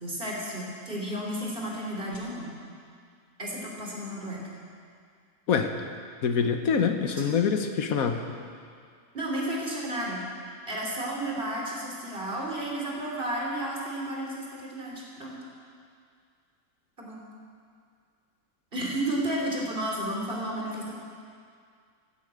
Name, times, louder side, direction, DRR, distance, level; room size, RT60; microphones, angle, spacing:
voice 1, 0.0-2.5 3.4-4.5 9.1-10.2 10.7-15.4 17.0-17.2 18.7-20.9, right 1 dB, 40° right, -3 dB, 3.2 m, -32 dB
voice 2, 6.2-8.3, left 6 dB, 90° left, 6 dB, 1.5 m, -25 dB
16.0 x 8.4 x 8.1 m, 2.2 s
omnidirectional pair, 1.4 m